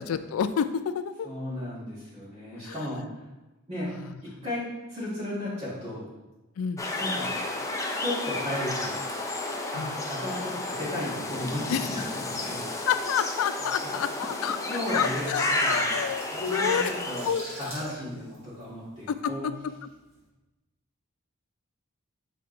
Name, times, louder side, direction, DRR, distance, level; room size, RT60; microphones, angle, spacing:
voice 1, 0.0-1.3 2.6-2.7 4.0-4.1 6.6-6.8 9.8-10.0 11.7-11.8 12.9-14.6 14.9-17.0 17.3-17.5 19.1-19.5, left 7 dB, 80° left, 12 dB, 0.3 m, -29 dB
voice 2, 1.2-3.2 3.7-3.9 4.2-6.1 7.0-7.4 8.0-9.0 9.7-12.7 14.7-15.9 16.3-16.8 17.1-17.3 17.6-19.4, left 1 dB, 30° right, -9 dB, 1.6 m, -34 dB
sound 1, 6.8-17.3, left 2 dB, 15° left, 0.5 m, -31 dB
sound 2, 14.7-19.5 19.8-20.1, equal, 10° right, 1.5 m, -44 dB
7.4 x 3.4 x 3.8 m, 1.1 s
head